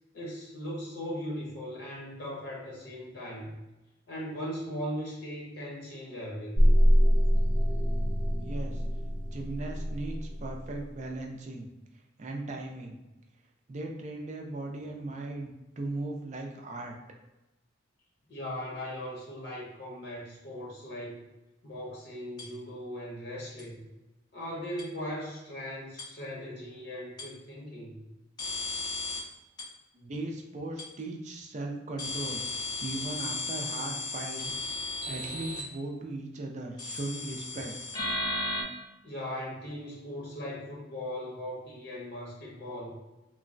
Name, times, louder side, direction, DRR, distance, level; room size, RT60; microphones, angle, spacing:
voice 1, 0.1-3.6 4.1-6.8 18.3-21.3 21.6-23.9 24.3-28.0 39.0-43.0, equal, 60° left, -4 dB, 0.7 m, -39 dB
sound 1, 6.5-10.8, equal, 10° right, 0.9 m, -25 dB
voice 2, 8.4-8.8 9.3-11.7 12.2-13.0 13.7-17.0 29.9-32.4 32.8-34.7 35.1-37.7, right 2 dB, 40° right, 1 dB, 0.4 m, -38 dB
sound 2, 22.4-22.5 23.6-23.7 24.8-24.9 26.0-26.1 27.2-27.3 28.4-29.2 29.6-29.7 30.8-30.9 32.0-35.6 36.8-38.6, left 2 dB, 20° left, 0.4 m, -34 dB
3.1 x 2.0 x 2.5 m, 1.0 s
head